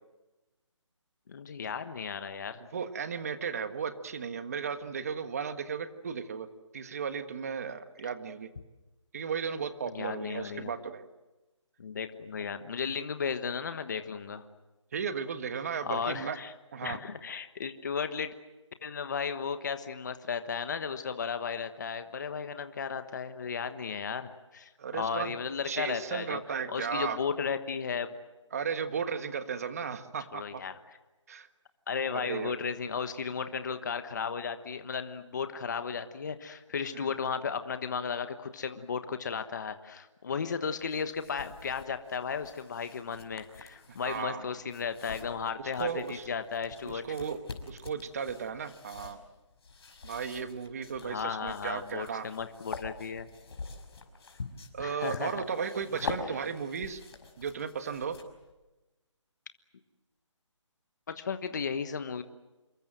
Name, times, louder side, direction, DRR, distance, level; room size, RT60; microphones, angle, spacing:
voice 1, 1.3-2.6 9.9-10.7 11.8-14.4 15.8-16.5 16.8-18.3 18.8-26.4 26.7-28.2 30.3-31.0 31.9-47.2 51.0-53.3 54.8-55.4 55.9-56.1 61.1-62.2, left 6 dB, 35° left, 9 dB, 1.3 m, -35 dB
voice 2, 2.7-6.5 6.7-8.5 9.1-11.0 14.9-16.4 16.7-17.0 24.8-25.3 25.6-27.2 28.5-30.6 31.3-31.5 32.1-32.5 36.9-37.1 44.0-44.5 45.8-46.3 46.8-47.4 47.7-49.2 50.0-52.3 54.7-57.0 57.4-58.2, right 6 dB, 30° right, 10 dB, 1.6 m, -35 dB
sound 1, 40.8-58.5, left 4 dB, 50° left, 5.5 m, -45 dB
27.5 x 23.5 x 7.7 m, 1.1 s
hypercardioid pair, 175°, 16 cm